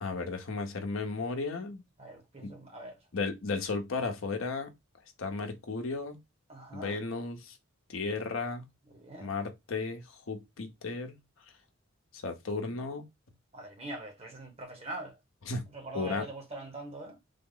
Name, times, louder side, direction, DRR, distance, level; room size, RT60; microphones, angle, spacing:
voice 1, 0.0-1.8 2.4-2.5 3.1-4.7 5.2-6.2 6.7-7.6 7.9-8.7 9.2-11.1 12.1-13.1 15.5-15.7 15.9-16.3, left 3 dB, 75° left, 0.8 m, -34 dB
voice 2, 2.0-3.0 6.5-7.0 8.9-9.3 13.5-15.2 15.7-17.2, right 2 dB, 30° right, 1.0 m, -43 dB
3.7 x 2.0 x 3.7 m
head